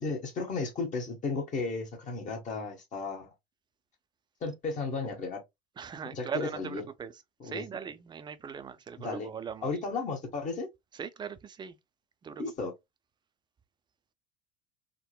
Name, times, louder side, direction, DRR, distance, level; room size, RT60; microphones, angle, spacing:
voice 1, 0.0-3.3 4.4-5.4 6.1-6.8 7.4-7.6 9.0-9.3 9.6-10.7 12.4-12.7, left 4 dB, 40° left, 1.0 m, -34 dB
voice 2, 5.8-7.1 7.4-9.7 10.9-11.8 12.2-12.7, right 7 dB, 20° right, 0.4 m, -40 dB
3.6 x 2.0 x 2.3 m
hypercardioid pair, 85°, 20 cm